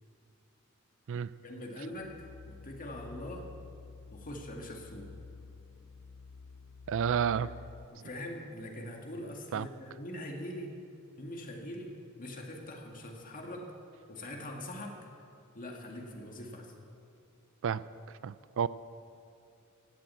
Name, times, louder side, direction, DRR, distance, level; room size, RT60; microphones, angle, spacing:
voice 1, 1.4-3.5 4.1-5.1 7.4-7.5 7.9-10.8 11.2-13.7 14.1-15.1 15.5-16.7, left 1 dB, 40° left, 1 dB, 2.0 m, -43 dB
sound 1, 1.9-7.9, left 4 dB, 60° left, 0.4 m, -50 dB
voice 2, 6.9-7.5 9.5-9.7 17.6-17.8 18.2-18.7, right 7 dB, 65° right, 17 dB, 0.4 m, -30 dB
16.5 x 7.7 x 8.5 m, 2.5 s
head